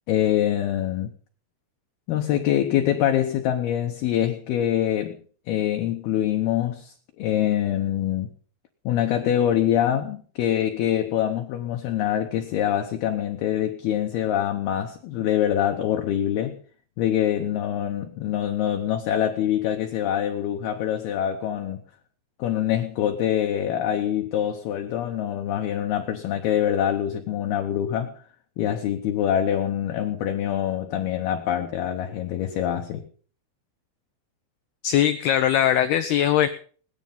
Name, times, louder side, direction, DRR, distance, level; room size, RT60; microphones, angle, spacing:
voice 1, 0.1-1.1 2.1-5.2 5.5-8.3 8.8-16.6 17.0-21.8 22.4-28.2 28.6-33.0, left 11 dB, 70° left, 5 dB, 2.5 m, -25 dB
voice 2, 34.8-36.5, left 10 dB, 85° left, 11 dB, 2.2 m, -20 dB
18.5 x 11.5 x 5.7 m, 0.43 s
omnidirectional pair, 5.7 m